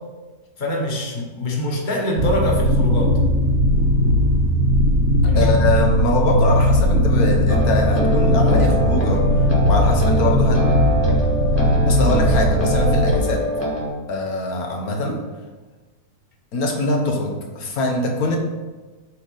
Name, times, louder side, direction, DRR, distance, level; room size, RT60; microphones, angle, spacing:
voice 1, 0.6-3.2 5.3-5.6, left 1 dB, 35° left, -1 dB, 1.3 m, -23 dB
sound 1, 2.2-13.2, equal, 60° right, 1.0 m, -18 dB
voice 2, 5.3-9.2 9.6-10.6 11.9-13.4 14.1-15.2 16.5-18.4, left 2 dB, 80° left, 1 dB, 1.5 m, -22 dB
sound 2, 7.5-13.9, equal, 10° left, 1.3 m, -24 dB
7.5 x 4.0 x 5.4 m, 1.3 s
omnidirectional pair, 1.6 m